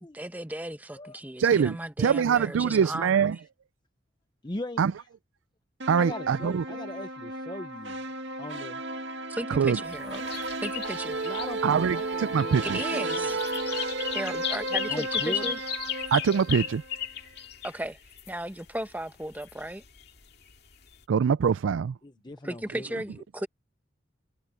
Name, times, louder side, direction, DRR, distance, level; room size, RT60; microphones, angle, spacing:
voice 1, 0.1-3.4 9.3-11.2 12.6-13.4 14.1-15.6 17.6-18.0 18.3-19.8 22.4-23.5, right 1 dB, 10° right, 1.0 m, -35 dB
voice 2, 1.4-3.4 4.8-4.9 5.9-6.6 9.6-9.8 11.6-12.8 16.1-16.8 21.1-21.9, right 7 dB, 90° right, 0.4 m, -24 dB
voice 3, 4.4-5.1 6.0-8.0 8.4-8.8 11.0-13.4 14.7-15.4 22.0-22.9, left 1 dB, 25° left, 0.7 m, -39 dB
sound 1, 5.8-17.0, right 2 dB, 65° right, 2.1 m, -34 dB
sound 2, 9.9-18.4 18.7-19.0 19.3-20.2 20.5-20.9, left 10 dB, 55° left, 2.3 m, -35 dB
head